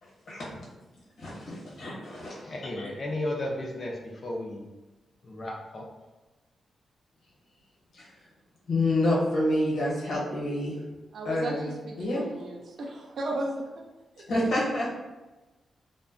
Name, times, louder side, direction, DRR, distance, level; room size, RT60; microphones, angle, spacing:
voice 1, 1.2-2.4 2.7-2.9 7.9-8.1 8.7-10.8 11.2-11.7 12.0-12.2 14.3-14.9, left 1 dB, 70° left, -5 dB, 1.0 m, -28 dB
voice 2, 2.3-4.7 5.2-5.9, left 1 dB, 40° left, 0 dB, 0.4 m, -34 dB
voice 3, 11.1-13.8 14.2-14.5, right 1 dB, 60° right, 0 dB, 0.3 m, -35 dB
2.7 x 2.2 x 2.4 m, 1.1 s
wide cardioid pair, 150°, 0 cm